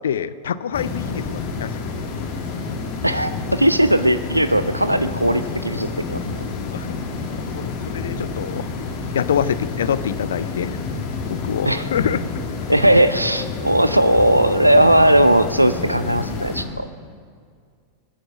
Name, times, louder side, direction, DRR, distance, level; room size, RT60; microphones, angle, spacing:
voice 1, 0.0-1.7 6.7-7.0 7.3-8.7 9.1-10.8 11.3-12.2, left 8 dB, 65° left, 16 dB, 0.6 m, -25 dB
sound 1, 0.7-16.6, left 4 dB, 45° left, 2.5 m, -29 dB
voice 2, 3.0-6.2 11.6-11.9 12.7-16.9, right 1 dB, 85° right, 12 dB, 0.5 m, -17 dB
24.0 x 9.8 x 6.2 m, 2.1 s
figure-of-eight pair, 90°, 0 cm